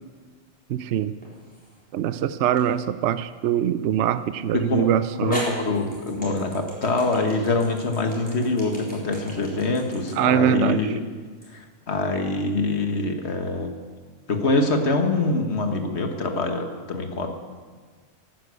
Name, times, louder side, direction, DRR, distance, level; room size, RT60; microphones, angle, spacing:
voice 1, 0.7-1.1 1.9-5.4 10.2-10.8, right 9 dB, 65° right, 13 dB, 0.8 m, -23 dB
sound 1, 1.2-1.8 2.6-2.7 4.6-4.7 5.3-11.5, equal, 5° left, 4.1 m, -38 dB
voice 2, 4.5-4.9 5.2-11.0 11.5-13.7 14.3-17.3, left 2 dB, 55° left, 5 dB, 1.7 m, -24 dB
13.0 x 10.0 x 8.2 m, 1.5 s
omnidirectional pair, 1.4 m